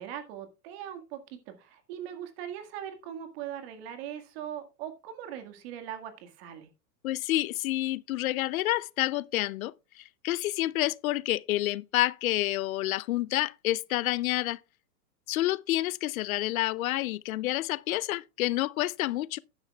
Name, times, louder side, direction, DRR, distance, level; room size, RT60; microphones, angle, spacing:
voice 1, 0.0-6.7, right 10 dB, 40° right, 1.9 m, -40 dB
voice 2, 7.0-14.6 15.3-19.4, left 16 dB, 60° left, 0.6 m, -29 dB
12.5 x 10.0 x 2.3 m
supercardioid pair, 160°, 47 cm